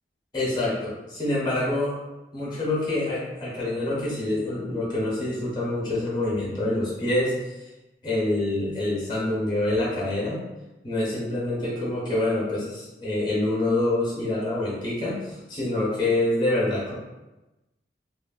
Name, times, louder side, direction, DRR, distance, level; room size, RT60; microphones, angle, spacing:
voice 1, 0.3-1.9 2.3-7.3 8.0-10.4 10.8-16.9, left 2 dB, 25° left, -6 dB, 0.8 m, -26 dB
3.0 x 2.2 x 2.3 m, 1.0 s
head